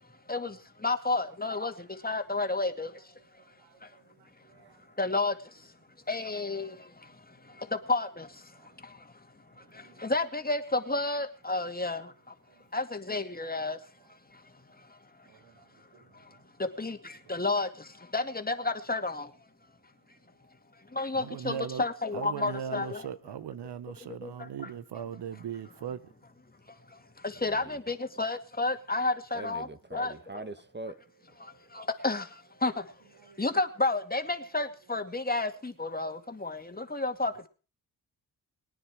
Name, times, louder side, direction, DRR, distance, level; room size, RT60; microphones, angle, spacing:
voice 1, 0.8-1.7 2.0-2.9 5.0-5.3 6.1-6.7 7.9-8.3 10.0-12.0 12.7-13.8 16.8-17.0 17.3-17.7 18.1-19.3 21.0-23.0 24.2-24.3 27.4-29.7 29.9-30.1 31.8-32.2 32.6-32.7 33.4-36.6 36.9-37.5, left 2 dB, 20° left, 2.2 m, -30 dB
voice 2, 21.1-21.9 22.1-26.0 33.3-33.4, right 8 dB, 70° right, 0.9 m, -38 dB
voice 3, 27.4-27.8 29.3-31.0, right 2 dB, 25° right, 1.3 m, -42 dB
22.5 x 9.7 x 4.9 m
cardioid pair, 60°, 41 cm